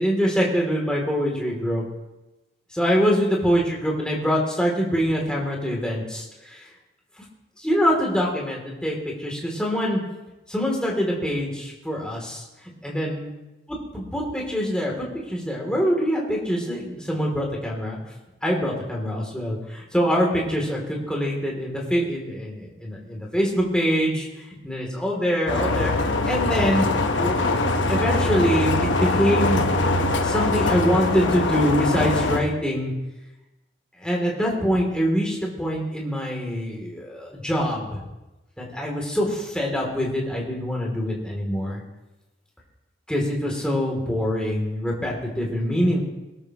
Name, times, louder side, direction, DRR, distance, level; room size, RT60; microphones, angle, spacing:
voice 1, 0.0-1.8 2.7-6.7 7.6-10.0 10.5-12.4 12.8-13.3 13.9-18.0 18.4-24.3 24.6-25.9 26.3-26.9 27.2-29.7 30.2-32.9 34.0-38.0 38.6-41.8 43.1-46.0, equal, 5° left, -2 dB, 2.9 m, -24 dB
sound 1, 25.5-32.4, left 2 dB, 90° left, 1.2 m, -22 dB
22.0 x 12.5 x 3.0 m, 1.0 s
head